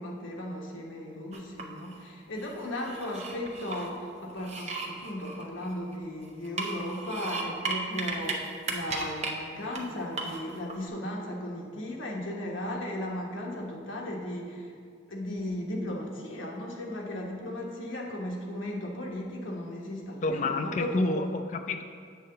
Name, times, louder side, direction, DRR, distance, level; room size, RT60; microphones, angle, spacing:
voice 1, 0.0-14.8 15.1-21.0, left 1 dB, 80° left, -1 dB, 1.2 m, -36 dB
sound 1, 1.3-2.0 2.4-3.9 4.4-6.0 6.4-8.3 8.6-9.3 9.7-9.8 10.2-10.7, right 3 dB, 35° right, 0.7 m, -35 dB
voice 2, 20.2-21.8, left 2 dB, 40° left, 6 dB, 0.4 m, -29 dB
8.2 x 3.8 x 6.6 m, 2.1 s
head